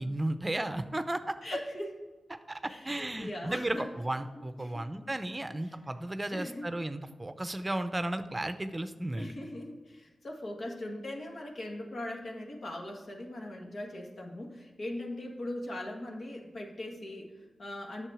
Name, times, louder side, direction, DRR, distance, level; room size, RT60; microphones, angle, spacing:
voice 1, 0.0-1.4 2.5-2.6 2.8-9.3, right 1 dB, 25° right, 10 dB, 0.6 m, -34 dB
voice 2, 1.4-1.9 2.7-3.9 4.3-4.8 5.7-5.8 6.3-6.7 9.1-18.1, left 1 dB, 65° left, 1 dB, 1.8 m, -40 dB
8.9 x 6.5 x 4.9 m, 1.3 s
cardioid pair, 50°, 0 cm